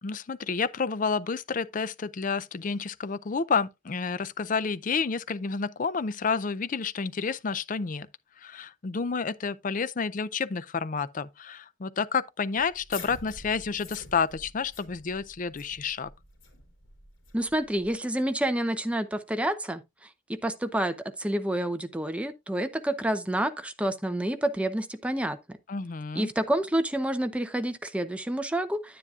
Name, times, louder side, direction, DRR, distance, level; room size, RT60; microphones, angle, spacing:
voice 1, 0.0-8.1 8.4-16.1 25.7-26.3, left 5 dB, 40° left, 0.5 m, -30 dB
sound 1, 12.6-17.9, left 4 dB, 80° left, 3.3 m, -47 dB
voice 2, 17.3-25.6 26.1-29.0, right 1 dB, 5° right, 0.6 m, -29 dB
9.9 x 9.4 x 2.4 m
head